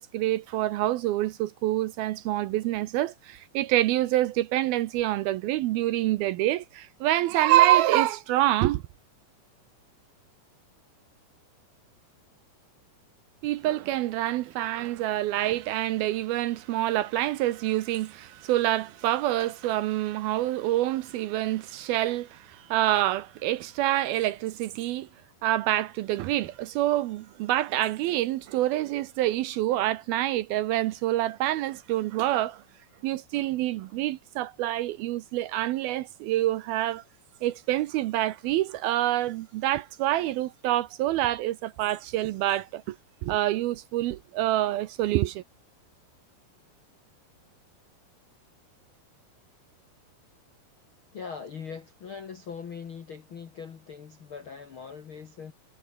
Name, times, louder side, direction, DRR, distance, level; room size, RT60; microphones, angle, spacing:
voice 1, 0.0-8.8 13.4-25.1 25.4-32.6 33.0-37.0 37.4-43.0 43.2-45.4, right 15 dB, 75° right, 2.4 m, -26 dB
voice 2, 51.1-55.5, left 6 dB, 65° left, 1.3 m, -41 dB
omnidirectional pair, 4.9 m